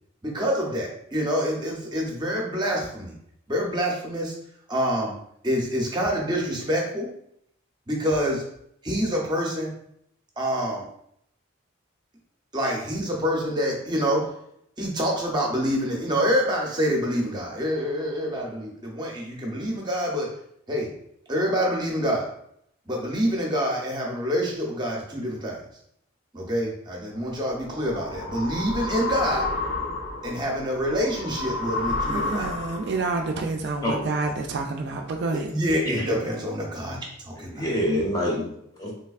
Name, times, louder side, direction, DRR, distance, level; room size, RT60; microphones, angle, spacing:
voice 1, 0.2-3.2 3.5-4.3 4.7-5.2 5.4-7.1 7.9-8.4 8.8-9.7 10.4-10.9 12.5-14.3 14.8-20.4 20.7-20.9 21.3-22.3 22.9-25.6 26.3-29.5 30.2-32.6 35.5-37.7, equal, 20° right, 0.6 m, -26 dB
sound 1, 27.3-33.0, left 2 dB, 90° left, 0.9 m, -31 dB
voice 2, 32.1-35.5, right 3 dB, 55° right, 0.3 m, -28 dB
voice 3, 37.4-38.9, equal, 20° left, 0.7 m, -27 dB
3.3 x 3.2 x 2.4 m
head